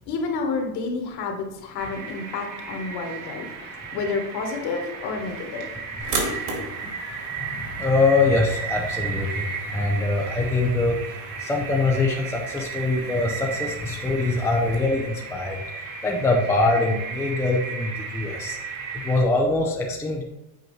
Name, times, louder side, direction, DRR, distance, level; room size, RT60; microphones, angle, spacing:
voice 1, 0.1-5.7, left 4 dB, 50° left, 3 dB, 1.5 m, -30 dB
sound 1, 1.8-19.2, right 6 dB, 70° right, 1.9 m, -35 dB
sound 2, 6.0-14.8, right 3 dB, 55° right, 2.2 m, -37 dB
voice 2, 7.4-11.0 11.4-15.6 16.0-18.6 18.9-20.2, left 3 dB, 5° left, -1 dB, 0.4 m, -23 dB
7.8 x 4.5 x 3.2 m, 0.90 s
supercardioid pair, 125°, 50 cm